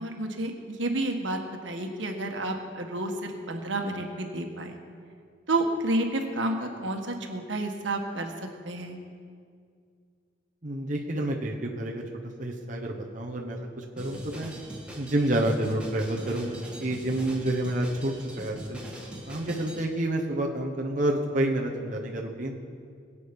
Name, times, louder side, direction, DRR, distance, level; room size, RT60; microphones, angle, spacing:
voice 1, 0.0-4.8 5.5-9.0, right 2 dB, 80° right, 3 dB, 1.5 m, -30 dB
voice 2, 10.6-14.5 15.0-18.8 19.3-22.6, right 1 dB, 40° right, -1 dB, 1.1 m, -29 dB
Drum kit, 14.0-19.8, right 1 dB, 5° right, 2.0 m, -42 dB
21.5 x 8.5 x 5.3 m, 2.3 s
head